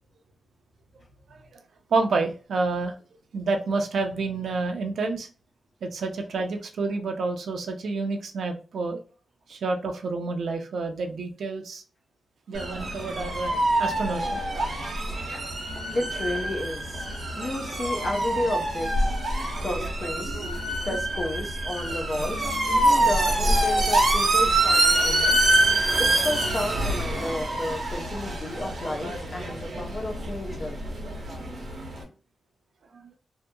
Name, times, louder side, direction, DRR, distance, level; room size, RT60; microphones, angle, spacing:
voice 1, 1.9-2.9 3.3-5.3 5.8-9.0 9.5-11.8 12.5-14.4 33.0-33.1, right 3 dB, 75° right, 5 dB, 0.5 m, -29 dB
sound 1, 12.5-32.0, right 1 dB, 55° right, 0.9 m, -25 dB
voice 2, 15.9-17.0 17.4-19.1 19.6-20.5 20.8-25.5 26.0-30.8, left 1 dB, 35° left, 3 dB, 0.5 m, -32 dB
2.7 x 2.6 x 2.2 m, 0.36 s
wide cardioid pair, 150°, 0 cm